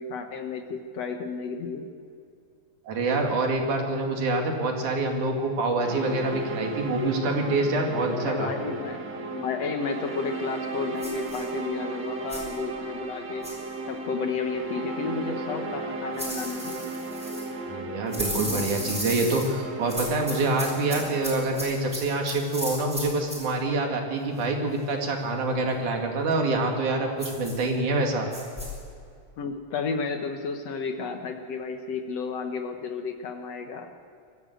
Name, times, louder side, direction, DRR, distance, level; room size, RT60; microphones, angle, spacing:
voice 1, 0.0-1.9 8.2-13.5 13.9-16.8 29.4-33.9, left 5 dB, 60° left, 6 dB, 2.2 m, -32 dB
voice 2, 2.9-8.5 17.7-28.3, right 2 dB, 75° right, 2 dB, 3.8 m, -26 dB
sound 1, 5.8-21.4, right 2 dB, 40° right, 2.0 m, -35 dB
sound 2, 11.0-11.4 12.3-12.5 13.4-13.7 16.2-17.5 18.1-19.5 19.9-23.5 27.2-27.6 28.3-28.7, equal, ahead, 4.9 m, -35 dB
23.0 x 14.5 x 7.9 m, 2.4 s
omnidirectional pair, 3.6 m